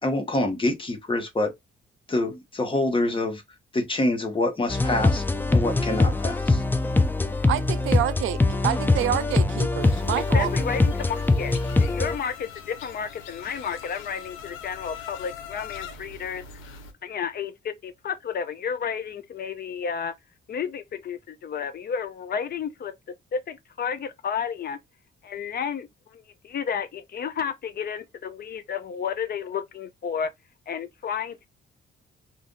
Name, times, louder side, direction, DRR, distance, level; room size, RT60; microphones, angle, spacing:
voice 1, 0.0-1.5 2.1-3.4 3.7-5.2 5.5-6.6, left 2 dB, 25° left, 1.1 m, -26 dB
sound 1, 4.7-12.2, left 3 dB, 10° left, 0.4 m, -22 dB
voice 2, 7.4-8.4 8.6-10.5, right 12 dB, 80° right, 0.4 m, -27 dB
sound 2, 9.8-16.9, left 7 dB, 90° left, 0.6 m, -42 dB
voice 3, 10.3-11.5 11.8-16.4 17.0-20.1 20.5-22.9 23.3-24.8 25.2-30.3 30.7-31.5, left 7 dB, 50° left, 0.6 m, -32 dB
2.6 x 2.5 x 3.6 m
cardioid pair, 90°, 20 cm